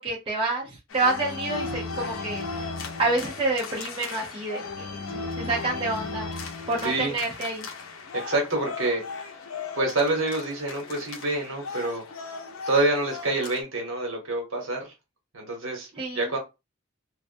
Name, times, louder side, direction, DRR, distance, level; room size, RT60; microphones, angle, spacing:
voice 1, 0.0-2.5 3.0-6.3 6.7-7.7 16.0-16.2, right 2 dB, 25° right, 0.6 m, -28 dB
sound 1, 0.9-13.6, left 4 dB, 80° left, 0.5 m, -36 dB
voice 2, 6.8-7.2 8.1-9.0 9.7-12.0 12.7-14.9 15.3-16.4, right 2 dB, 70° right, 1.1 m, -27 dB
2.4 x 2.1 x 2.5 m
head